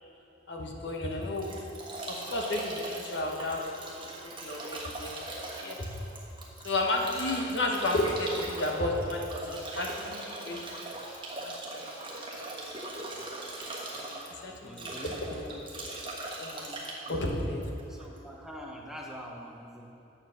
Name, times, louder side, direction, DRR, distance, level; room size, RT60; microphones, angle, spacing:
voice 1, 0.5-1.5 2.1-3.6 3.9-4.1 4.4-5.2 5.6-5.9 6.6-10.6 11.3-12.8 13.9-14.0 14.4-15.6 16.4-16.7 17.1-17.6, left 1 dB, 65° left, 1 dB, 1.2 m, -32 dB
Bathtub (filling or washing) / Drip / Trickle dribble, 0.9-18.2, right 2 dB, 25° right, 1.3 m, -40 dB
voice 2, 14.5-15.2 15.8-16.0 16.6-16.7 17.1-17.6 17.9-19.9, equal, 5° right, -1 dB, 0.7 m, -45 dB
7.8 x 7.0 x 6.3 m, 2.9 s
head